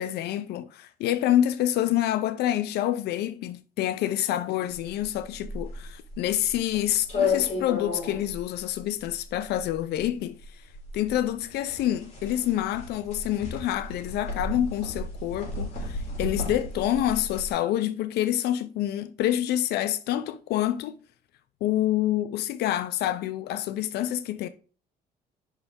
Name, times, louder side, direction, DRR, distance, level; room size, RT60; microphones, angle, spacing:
voice 1, 0.0-10.7 10.9-21.0 21.6-24.5, left 12 dB, 75° left, 0.6 m, -27 dB
sound 1, 4.8-17.5, left 3 dB, 40° left, 4.0 m, -34 dB
5.8 x 4.7 x 5.0 m
cardioid pair, 110°, 17 cm